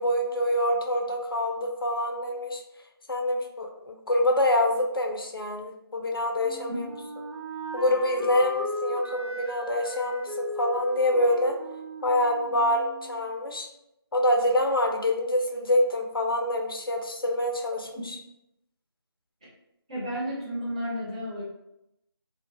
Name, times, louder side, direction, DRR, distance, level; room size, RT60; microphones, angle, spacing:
voice 1, 0.0-2.6 3.1-6.9 7.7-11.6 12.0-13.7 14.1-18.2, left 1 dB, 60° left, 2 dB, 0.4 m, -26 dB
Wind instrument woodwind instrument, 6.4-13.3, equal, 80° right, 0.5 m, -37 dB
voice 2, 6.7-7.0 17.9-18.1 19.9-21.4, equal, 15° right, -10 dB, 0.4 m, -32 dB
2.5 x 2.0 x 2.7 m, 0.85 s
figure-of-eight pair, 165°, 13 cm